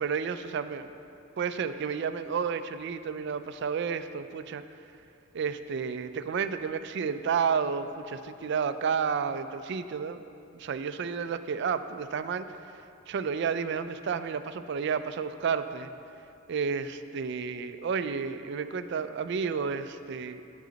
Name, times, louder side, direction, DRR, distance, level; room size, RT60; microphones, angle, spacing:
voice 1, 0.0-0.9 1.4-4.6 5.3-10.2 10.5-12.5 13.1-15.9 16.5-20.4, right 6 dB, 60° right, 11 dB, 0.3 m, -31 dB
9.0 x 7.7 x 3.9 m, 2.7 s
head